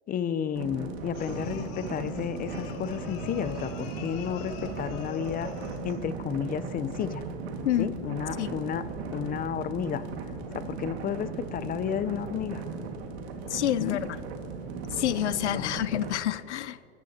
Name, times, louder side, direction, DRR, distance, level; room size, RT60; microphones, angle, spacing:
voice 1, 0.1-5.5 5.8-7.2 7.8-8.8 9.1-10.0 10.5-12.6 13.8-14.0 15.5-15.7, left 8 dB, 25° left, 14 dB, 0.7 m, -32 dB
sound 1, 0.5-16.2, right 4 dB, 70° right, 2.0 m, -37 dB
sound 2, 1.1-6.0, left 6 dB, 55° left, 2.1 m, -43 dB
voice 2, 13.5-14.1 14.9-16.9, left 12 dB, 85° left, 17 dB, 0.6 m, -28 dB
28.0 x 14.0 x 2.9 m, 2.5 s
hypercardioid pair, 105°, 33 cm